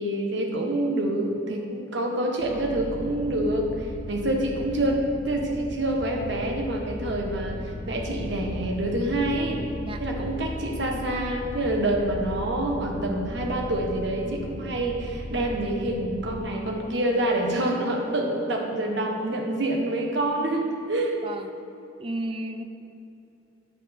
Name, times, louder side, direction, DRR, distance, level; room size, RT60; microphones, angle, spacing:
voice 1, 0.0-9.6 10.0-21.2, right 1 dB, 60° right, 1 dB, 1.2 m, -27 dB
sound 1, 2.4-16.4, left 1 dB, 35° left, 0.8 m, -37 dB
voice 2, 22.0-22.6, right 1 dB, 25° right, 6 dB, 0.5 m, -32 dB
9.3 x 8.3 x 3.5 m, 2.9 s
head